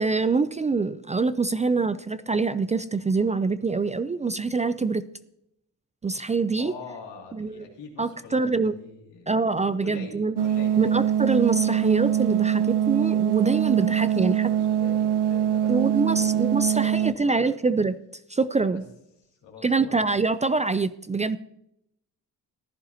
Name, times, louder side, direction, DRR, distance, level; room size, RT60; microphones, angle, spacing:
voice 1, 0.0-5.0 6.0-6.7 7.4-7.5 8.0-8.7 9.3-10.3 10.8-14.5 15.7-17.9 18.3-18.8 19.6-21.4, right 4 dB, 20° right, 14 dB, 0.3 m, -25 dB
voice 2, 6.6-9.4 9.8-11.2 13.8-16.3 16.7-17.5 18.7-18.8 19.3-20.0, left 4 dB, 90° left, 0 dB, 2.6 m, -44 dB
sound 1, 10.4-17.1, right 10 dB, 70° right, 0.6 m, -23 dB
15.0 x 10.5 x 2.8 m, 0.78 s
cardioid pair, 70°, 41 cm